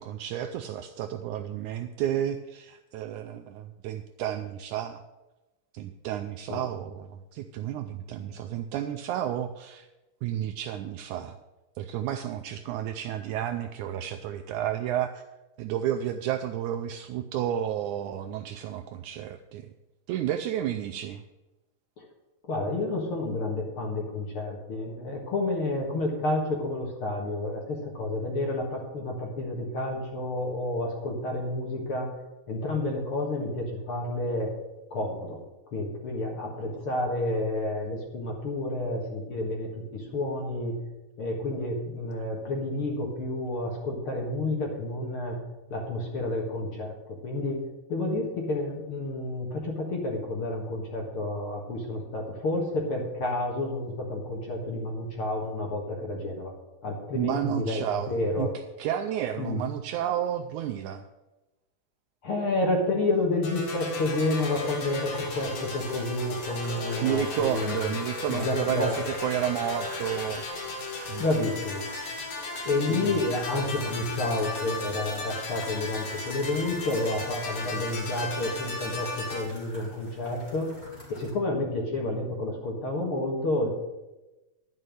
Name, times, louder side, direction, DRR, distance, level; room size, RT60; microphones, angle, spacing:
voice 1, 0.0-5.0 5.7-9.9 10.2-11.4 11.8-15.2 15.6-19.7 20.1-21.2 57.1-58.5 58.8-61.0 67.0-70.4 71.1-71.2 72.9-73.4, right 11 dB, 80° right, 7 dB, 1.8 m, -31 dB
voice 2, 22.5-32.2 32.5-34.5 34.9-35.4 35.7-40.8 41.2-45.4 45.7-47.6 47.9-56.5 56.8-58.5 59.4-59.6 62.2-68.0 68.3-68.9 71.2-71.9 72.4-80.7 81.1-83.7, left 2 dB, 50° left, 0 dB, 2.1 m, -30 dB
sound 1, 63.4-79.4, left 3 dB, 75° left, 3.6 m, -35 dB
sound 2, 63.8-81.3, equal, 15° left, 2.4 m, -47 dB
11.0 x 5.4 x 7.6 m, 1.0 s
omnidirectional pair, 3.8 m